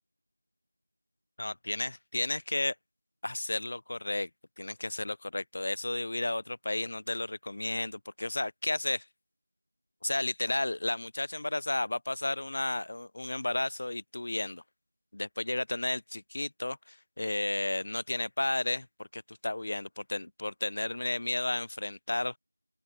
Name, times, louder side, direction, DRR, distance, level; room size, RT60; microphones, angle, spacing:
voice 1, 1.4-2.7 3.2-4.3 4.6-9.1 10.0-14.6 15.1-22.4, left 2 dB, 30° left, 0.6 m, -33 dB
open air
figure-of-eight pair, 180°, 0 cm